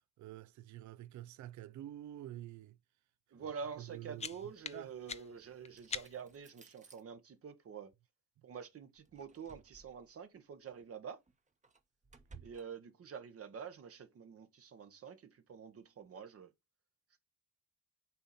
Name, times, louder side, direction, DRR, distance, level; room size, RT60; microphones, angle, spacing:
voice 1, 0.2-2.8 3.3-3.5 3.8-4.3 4.7-4.9, right 13 dB, 70° right, 0.5 m, -48 dB
voice 2, 3.3-7.9 8.4-11.2 12.4-16.5, right 6 dB, 50° right, 1.1 m, -47 dB
sound 1, 3.7-6.4, left 6 dB, 20° left, 0.4 m, -46 dB
sound 2, 5.7-7.0 9.0-10.1 10.7-10.8 11.3-12.6, right 4 dB, 25° right, 1.0 m, -59 dB
6.8 x 4.0 x 4.1 m
cardioid pair, 90°, 30 cm